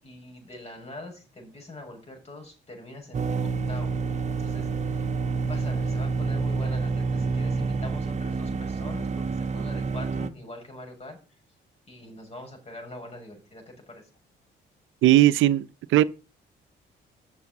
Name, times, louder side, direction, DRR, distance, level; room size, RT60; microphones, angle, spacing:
voice 1, 0.0-4.0 4.3-5.1 5.4-11.4 11.9-14.1, left 2 dB, 30° left, 6.8 m, -43 dB
sound 1, 3.1-10.3, right 4 dB, 35° right, 1.1 m, -28 dB
voice 2, 15.0-15.7 15.9-16.0, right 14 dB, 80° right, 0.6 m, -17 dB
7.4 x 7.2 x 8.1 m
cardioid pair, 90°, 20 cm